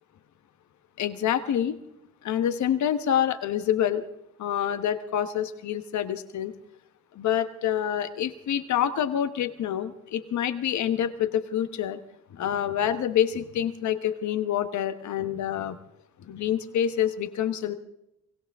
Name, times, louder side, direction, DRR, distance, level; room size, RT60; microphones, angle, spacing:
voice 1, 1.0-1.8 2.2-4.0 4.4-6.5 7.1-12.0 12.3-15.8 16.3-17.8, left 10 dB, 70° left, 10 dB, 1.3 m, -27 dB
23.5 x 16.5 x 3.6 m, 0.84 s
cardioid pair, 90°, 30 cm